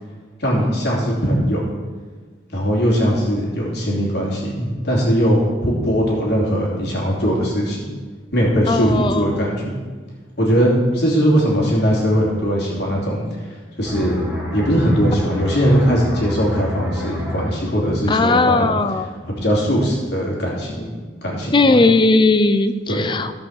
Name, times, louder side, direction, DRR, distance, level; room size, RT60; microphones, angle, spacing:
voice 1, 0.4-1.6 2.5-7.8 8.3-9.8 10.4-14.2 14.5-18.7 19.4-20.9 21.2-21.5 22.9-23.0, equal, 60° left, -4 dB, 3.0 m, -19 dB
voice 2, 8.7-9.5 18.1-19.1 21.5-23.3, left 3 dB, 25° left, 9 dB, 0.5 m, -17 dB
sound 1, 13.8-19.2 19.6-19.8, left 1 dB, 10° right, 3.0 m, -30 dB
15.0 x 5.6 x 6.5 m, 1.4 s
head